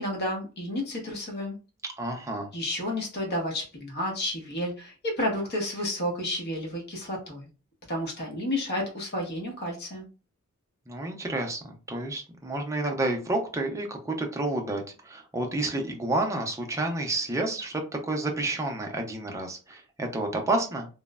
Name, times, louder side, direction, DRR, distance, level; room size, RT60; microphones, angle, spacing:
voice 1, 0.0-1.6 2.5-7.5 7.9-10.0, left 1 dB, 50° left, 0 dB, 0.9 m, -31 dB
voice 2, 2.0-2.5 10.9-20.9, right 2 dB, 15° right, 2 dB, 0.5 m, -30 dB
3.0 x 2.0 x 2.3 m, 0.33 s
head